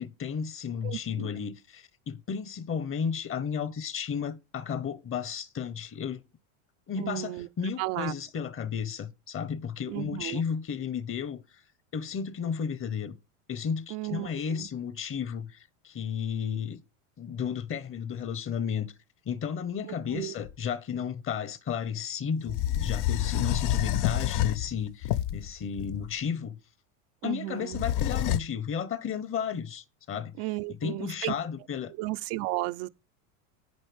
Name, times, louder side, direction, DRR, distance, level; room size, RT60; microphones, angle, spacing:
voice 1, 0.0-6.2 6.9-11.4 11.9-13.1 13.5-16.8 17.2-18.9 19.2-26.6 27.2-30.3 30.8-31.9, left 7 dB, 30° left, 1.3 m, -33 dB
voice 2, 0.8-1.4 7.0-7.5 7.8-8.1 9.9-10.4 13.9-14.7 20.1-20.3 27.2-27.8 30.4-31.3 32.0-32.9, right 18 dB, 60° right, 0.8 m, -34 dB
sound 1, 20.5-20.6 22.5-26.1 27.7-28.4, left 12 dB, 45° left, 0.7 m, -28 dB
11.0 x 9.1 x 3.5 m
supercardioid pair, 110°, 41 cm